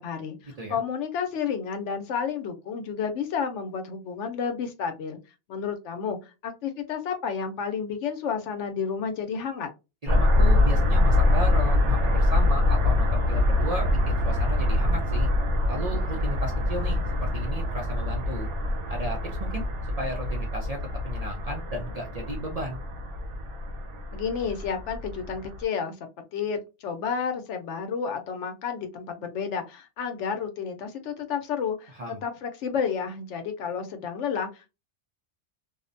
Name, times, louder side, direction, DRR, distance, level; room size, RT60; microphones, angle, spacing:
voice 1, 0.0-5.2 5.5-6.2 6.4-9.7 24.1-26.0 26.3-31.9 32.2-34.7, left 6 dB, 80° left, 7 dB, 0.9 m, -31 dB
voice 2, 10.0-15.3 15.7-18.5 18.9-19.7 20.0-22.8 31.9-32.2, right 1 dB, 45° right, 0 dB, 0.5 m, -34 dB
sound 1, 10.1-25.6, left 1 dB, 80° right, 1.0 m, -24 dB
2.5 x 2.1 x 2.5 m, 0.27 s
omnidirectional pair, 1.2 m